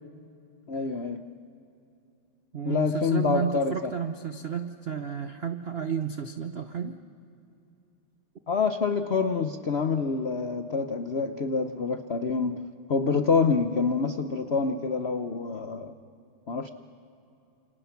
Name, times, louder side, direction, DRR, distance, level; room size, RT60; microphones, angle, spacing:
voice 1, 0.7-1.3 2.6-3.9 8.5-12.6 12.9-15.9 16.5-16.7, left 5 dB, 70° left, 8 dB, 0.6 m, -27 dB
voice 2, 2.5-7.0, right 7 dB, 65° right, 8 dB, 0.6 m, -32 dB
29.5 x 28.0 x 5.9 m, 2.8 s
omnidirectional pair, 2.4 m